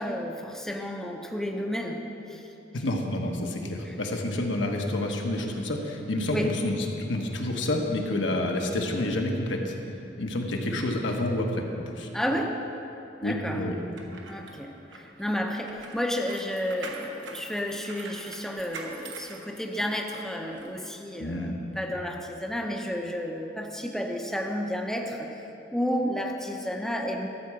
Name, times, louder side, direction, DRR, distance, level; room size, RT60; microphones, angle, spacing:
voice 1, 0.0-2.5 3.8-4.0 6.3-6.5 12.1-12.6 13.2-13.6 14.3-27.3, equal, 5° left, 1 dB, 0.6 m, -31 dB
voice 2, 2.7-9.7 10.2-12.1 13.2-13.7 21.2-21.6, left 1 dB, 80° left, 1 dB, 1.1 m, -29 dB
sound 1, 13.8-20.1 20.5-20.7, right 4 dB, 80° right, 1.1 m, -44 dB
13.0 x 4.7 x 7.5 m, 2.9 s
head